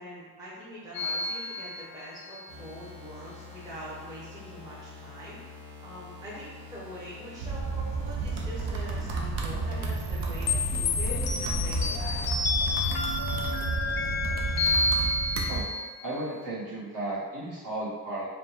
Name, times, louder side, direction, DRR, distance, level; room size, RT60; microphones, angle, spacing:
voice 1, 0.0-5.4 5.8-12.4, equal, 10° right, -9 dB, 0.8 m, -43 dB
sound 1, 0.9-2.5 10.5-16.2, left 3 dB, 60° left, 0.5 m, -29 dB
sound 2, 2.5-12.1, left 4 dB, 25° right, 1.2 m, -47 dB
sound 3, 7.4-15.6, right 3 dB, 75° right, 0.7 m, -31 dB
voice 2, 16.0-18.3, right 2 dB, 50° right, -8 dB, 1.5 m, -34 dB
4.9 x 2.3 x 3.2 m, 1.4 s
wide cardioid pair, 160°, 42 cm